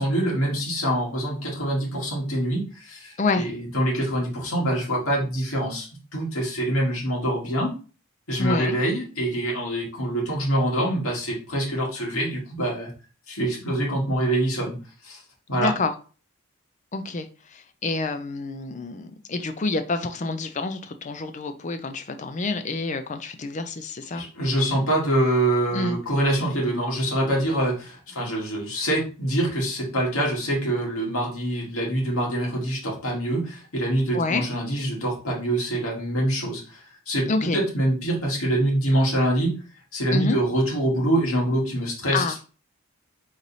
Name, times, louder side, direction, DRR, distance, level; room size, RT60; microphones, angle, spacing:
voice 1, 0.0-7.7 8.3-12.9 13.3-14.7 15.0-15.2 15.5-15.7 24.1-39.5 39.9-42.2, right 1 dB, 75° left, -2 dB, 2.0 m, -25 dB
voice 2, 3.2-3.5 8.4-8.8 15.5-15.9 16.9-24.2 25.7-26.0 34.1-34.4 37.3-37.6 40.1-40.4 42.1-42.4, left 3 dB, 35° left, 8 dB, 0.5 m, -28 dB
4.0 x 3.2 x 4.1 m, 0.36 s
head